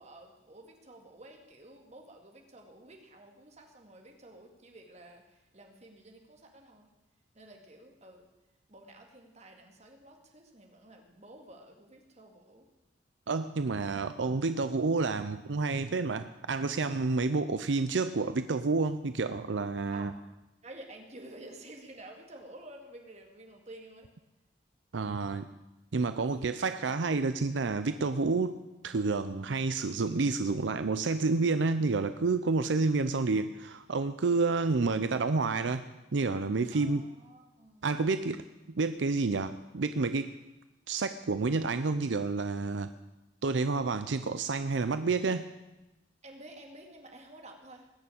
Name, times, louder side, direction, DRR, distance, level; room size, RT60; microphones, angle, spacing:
voice 1, 0.0-6.9 7.3-8.3 8.7-12.7 19.9-20.2 20.6-24.1 36.7-37.9 46.2-47.9, right 1 dB, 40° right, 3 dB, 2.4 m, -51 dB
voice 2, 13.3-20.1 24.9-25.5 25.9-35.9 36.1-37.1 37.8-38.4 38.7-40.3 40.9-42.9 43.4-45.5, right 3 dB, 80° right, 10 dB, 0.6 m, -29 dB
20.0 x 7.0 x 8.7 m, 1.0 s
head